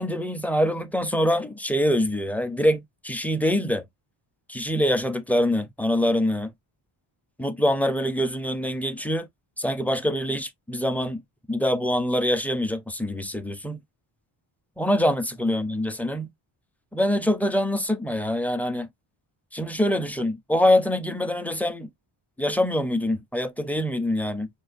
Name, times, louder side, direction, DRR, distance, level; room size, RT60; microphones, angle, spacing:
voice 1, 0.0-3.8 4.5-6.5 7.4-9.3 9.6-11.2 11.5-13.8 14.8-16.3 16.9-18.9 19.5-21.9 22.4-24.5, left 1 dB, 5° left, 0.4 m, -24 dB
5.3 x 2.2 x 2.4 m
cardioid pair, 105°, 47 cm